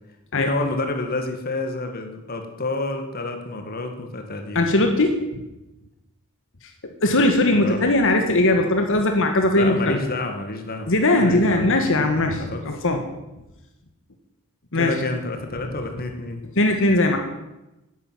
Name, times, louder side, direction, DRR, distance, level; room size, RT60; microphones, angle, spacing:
voice 1, 0.4-4.6 7.5-7.9 9.5-10.9 11.2-11.7 12.4-12.6 14.7-16.4, left 2 dB, 45° left, 5 dB, 1.9 m, -29 dB
voice 2, 4.6-5.4 6.8-10.0 10.9-13.0 14.7-14.9 16.6-17.2, left 2 dB, 60° left, 4 dB, 1.8 m, -19 dB
11.0 x 10.5 x 9.1 m, 0.98 s
head